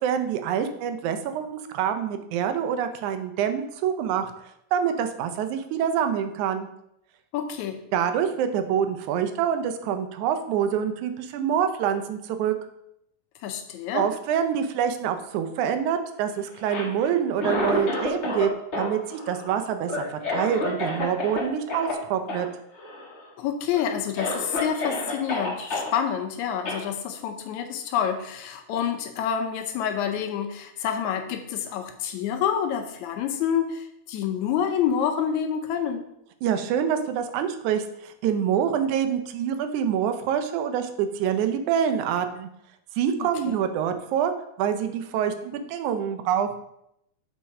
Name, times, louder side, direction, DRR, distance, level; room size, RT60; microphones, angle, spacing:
voice 1, 0.0-4.3 4.7-6.7 7.9-12.6 13.9-18.5 18.8-20.0 20.3-22.5 36.4-42.5 43.0-44.3 44.6-46.6, right 8 dB, 85° right, 8 dB, 2.1 m, -26 dB
voice 2, 7.3-7.8 13.4-14.1 23.4-36.1 43.2-43.6, left 8 dB, 80° left, 5 dB, 2.0 m, -28 dB
Cough, 16.5-18.5 18.7-21.4 21.7-21.9 22.3-22.4 22.7-23.3 23.7-23.8 24.1-25.9 26.6-26.8, left 2 dB, 40° left, 1.0 m, -30 dB
7.1 x 4.4 x 4.8 m, 0.78 s
omnidirectional pair, 3.4 m